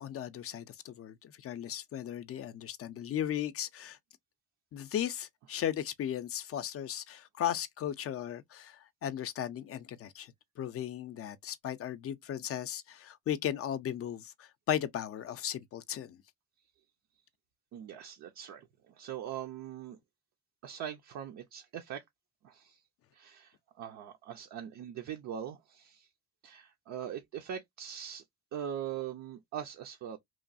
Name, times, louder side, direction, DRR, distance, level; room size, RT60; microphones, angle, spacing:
voice 1, 0.0-4.0 4.7-10.3 10.6-16.2, left 10 dB, 50° left, 0.4 m, -36 dB
voice 2, 17.7-20.0 20.6-22.0 22.4-22.8 23.1-26.1 26.4-28.2 28.5-30.2, right 9 dB, 65° right, 0.6 m, -41 dB
3.0 x 2.2 x 2.5 m
cardioid pair, 95°, 30 cm